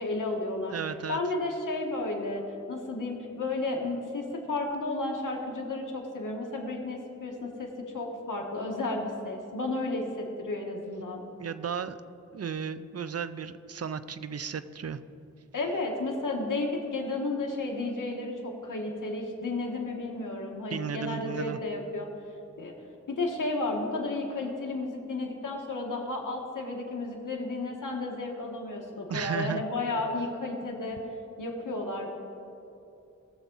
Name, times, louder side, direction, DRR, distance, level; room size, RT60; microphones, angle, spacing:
voice 1, 0.0-0.7 1.1-2.4 2.7-11.2 15.5-22.1 22.6-22.7 23.1-31.0 31.4-32.1, left 2 dB, 85° left, 1 dB, 1.6 m, -32 dB
voice 2, 0.7-1.2 11.4-12.0 12.3-15.0 20.7-21.6 29.1-29.6, right 7 dB, 50° right, 13 dB, 0.5 m, -34 dB
19.5 x 7.1 x 4.0 m, 2.7 s
wide cardioid pair, 65°, 31 cm